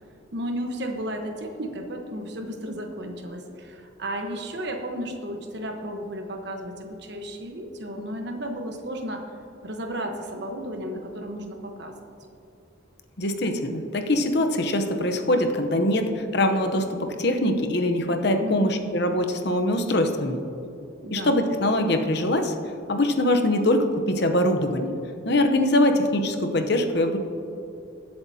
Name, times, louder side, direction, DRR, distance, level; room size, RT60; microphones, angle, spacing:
voice 1, 0.3-9.3 9.6-12.0 18.4-19.0 21.0-21.4, equal, 55° right, 3 dB, 1.2 m, -33 dB
voice 2, 13.2-20.4 21.1-22.5 22.9-25.0 25.2-27.2, left 1 dB, 55° left, 6 dB, 0.8 m, -23 dB
20.5 x 7.9 x 2.8 m, 2.7 s
head